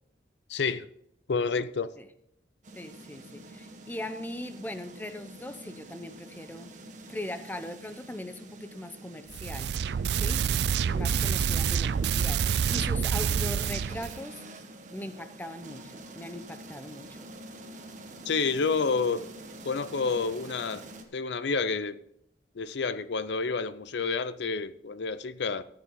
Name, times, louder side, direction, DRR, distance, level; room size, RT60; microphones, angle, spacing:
voice 1, 0.5-0.9 1.3-1.9 18.3-19.3 19.6-20.8 21.1-22.0 22.6-25.6, left 4 dB, 75° left, 0.5 m, -29 dB
sound 1, 2.6-21.0, right 1 dB, 45° right, 1.3 m, -47 dB
voice 2, 2.8-6.7 7.1-9.7 10.1-10.4 10.9-14.4 14.9-17.2, left 1 dB, 10° left, 0.6 m, -40 dB
sound 2, 9.3-14.2, right 7 dB, 65° right, 0.3 m, -27 dB
14.0 x 8.7 x 3.8 m
head